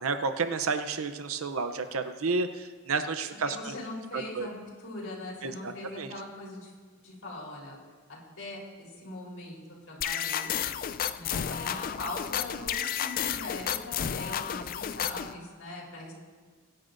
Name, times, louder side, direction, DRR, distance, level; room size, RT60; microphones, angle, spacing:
voice 1, 0.0-3.7 4.1-4.5 5.4-6.1, right 4 dB, 70° right, 9 dB, 0.6 m, -31 dB
voice 2, 3.5-6.7 7.0-7.8 8.1-10.6 11.1-16.1, left 2 dB, 65° left, -4 dB, 3.9 m, -41 dB
sound 1, 10.0-15.3, left 9 dB, 45° left, 0.4 m, -32 dB
23.0 x 10.5 x 2.6 m, 1.5 s
head